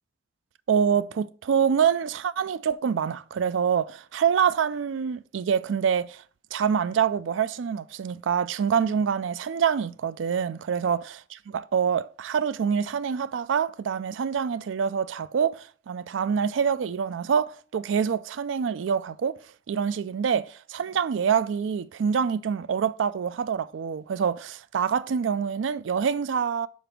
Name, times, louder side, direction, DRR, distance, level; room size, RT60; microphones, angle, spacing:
voice 1, 0.7-6.2 6.5-19.4 19.7-26.7, right 7 dB, 85° right, 0.4 m, -26 dB
5.2 x 4.9 x 5.8 m
head